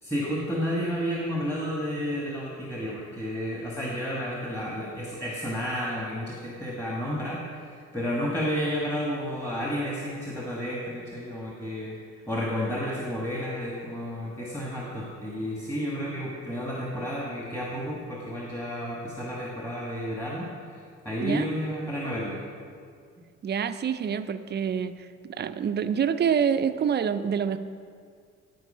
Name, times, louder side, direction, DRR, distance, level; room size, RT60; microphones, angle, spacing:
voice 1, 0.0-12.0 12.3-22.4, equal, 10° left, -4 dB, 1.4 m, -31 dB
voice 2, 23.4-24.9 25.3-27.6, right 7 dB, 35° right, 11 dB, 0.5 m, -26 dB
12.0 x 4.6 x 5.5 m, 2.2 s
cardioid pair, 90°, 30 cm